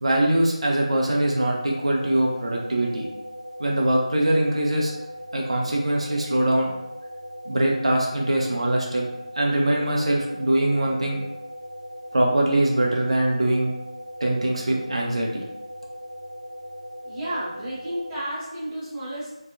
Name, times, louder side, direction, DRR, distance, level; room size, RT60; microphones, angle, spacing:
voice 1, 0.0-3.1 3.6-4.9 5.3-6.7 7.5-9.0 9.4-11.2 12.1-13.7 14.2-15.4, right 1 dB, 55° right, -1 dB, 0.5 m, -22 dB
sound 1, 0.6-18.2, equal, 80° left, 0.7 m, -39 dB
voice 2, 17.0-19.4, right 1 dB, 10° right, -11 dB, 0.5 m, -32 dB
2.6 x 2.2 x 2.5 m, 0.84 s
figure-of-eight pair, 165°, 4 cm